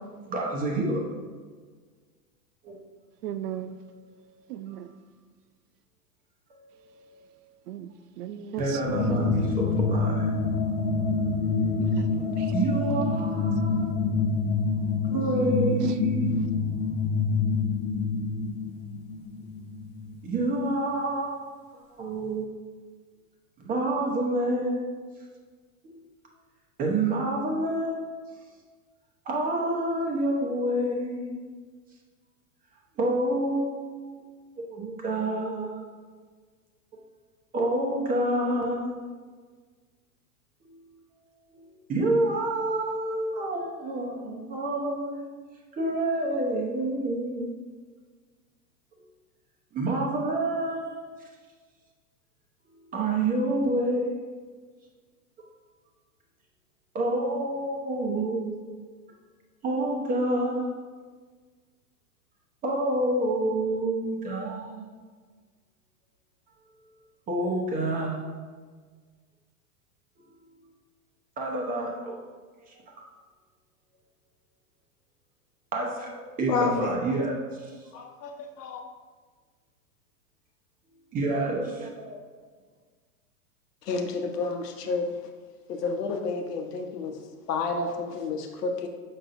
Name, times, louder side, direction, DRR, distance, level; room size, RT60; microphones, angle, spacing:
voice 1, 0.2-1.0 2.6-2.8 3.8-4.2 6.5-7.3 8.6-10.3 12.5-14.1 15.0-16.4 20.2-22.7 23.6-24.8 25.8-26.0 26.8-28.2 29.3-31.4 33.0-34.3 34.6-35.8 37.5-39.0 40.6-40.9 41.5-41.6 41.9-45.3 45.7-47.5 49.7-51.1 52.9-54.2 56.9-58.6 59.6-60.7 62.6-64.9 67.3-68.3 71.4-72.2 72.7-72.8 75.7-78.0 81.1-82.2 87.7-87.9, right 1 dB, 20° right, 0.9 m, -28 dB
voice 2, 3.2-3.8 4.5-4.9 7.7-9.5 11.8-12.5 15.8-15.9, right 10 dB, 80° right, 0.6 m, -38 dB
sound 1, 8.9-20.5, left 4 dB, 55° left, 0.9 m, -27 dB
voice 3, 76.5-77.0 77.9-78.8 83.8-85.1 85.7-87.2 87.5-88.9, left 4 dB, 85° left, 1.0 m, -30 dB
6.3 x 5.9 x 2.6 m
supercardioid pair, 140°, 46 cm